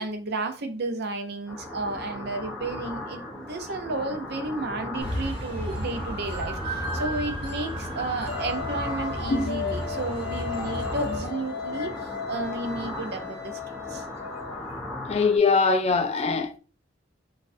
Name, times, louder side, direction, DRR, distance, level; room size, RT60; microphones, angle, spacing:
voice 1, 0.0-14.0, right 2 dB, 60° right, 0.6 m, -32 dB
sound 1, 1.5-15.4, left 1 dB, 5° left, 0.7 m, -38 dB
sound 2, 5.0-11.3, right 1 dB, 30° right, 1.0 m, -33 dB
sound 3, 8.3-14.6, left 7 dB, 60° left, 0.7 m, -35 dB
voice 2, 15.1-16.6, left 4 dB, 35° left, 0.3 m, -23 dB
4.0 x 2.3 x 2.6 m
head